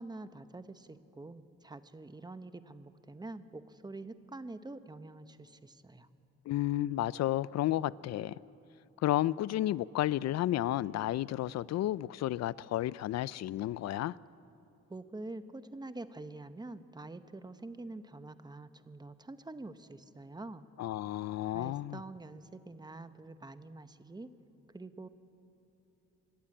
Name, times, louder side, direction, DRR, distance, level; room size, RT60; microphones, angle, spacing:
voice 1, 0.0-6.1 14.9-20.7 21.5-24.3 24.7-25.1, right 2 dB, 15° right, 0.9 m, -46 dB
voice 2, 6.5-8.3 9.0-14.1 20.8-22.0, left 14 dB, 60° left, 0.4 m, -32 dB
27.5 x 11.5 x 8.7 m
cardioid pair, 90°, 30 cm